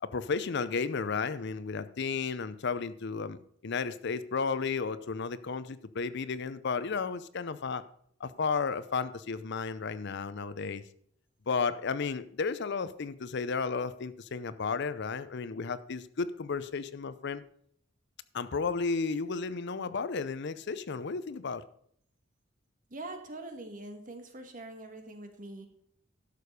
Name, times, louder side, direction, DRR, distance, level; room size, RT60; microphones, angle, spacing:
voice 1, 0.0-7.8 8.2-10.8 11.5-17.4 18.3-21.6, left 5 dB, 60° left, 14 dB, 0.6 m, -33 dB
voice 2, 22.9-25.7, right 2 dB, 45° right, 6 dB, 1.4 m, -43 dB
11.5 x 6.6 x 5.2 m, 0.66 s
head